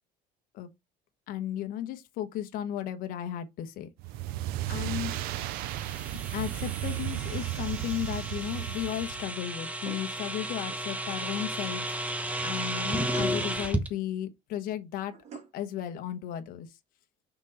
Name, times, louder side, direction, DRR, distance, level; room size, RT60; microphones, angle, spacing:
voice 1, 1.3-3.9 4.7-5.2 6.3-15.1 15.5-16.7, left 11 dB, 60° left, 1.2 m, -35 dB
sound 1, 4.0-9.3, right 15 dB, 70° right, 0.6 m, -34 dB
sound 2, 5.1-13.9, right 1 dB, 10° right, 1.0 m, -34 dB
sound 3, 9.8-10.9 12.9-13.7 15.1-15.7, right 6 dB, 45° right, 2.1 m, -47 dB
6.2 x 4.0 x 4.2 m
cardioid pair, 145°, 16 cm